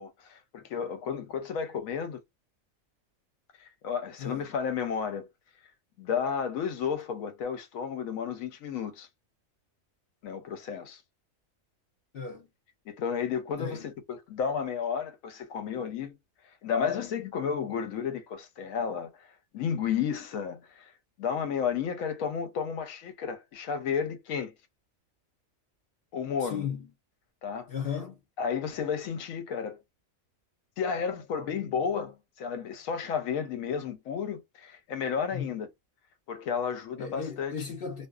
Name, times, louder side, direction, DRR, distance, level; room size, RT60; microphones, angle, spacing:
voice 1, 0.0-2.2 3.6-5.3 6.0-9.1 10.2-11.0 12.9-16.2 16.6-20.9 21.2-24.5 26.1-26.7 27.4-27.7 28.4-29.8 30.8-35.7 36.3-37.5, left 7 dB, 85° left, 1.1 m, -32 dB
voice 2, 4.2-4.5 12.1-12.5 13.6-13.9 26.4-26.9 27.7-28.2 35.3-35.6 37.0-38.1, left 7 dB, 55° left, 0.7 m, -36 dB
2.6 x 2.1 x 2.3 m
omnidirectional pair, 1.4 m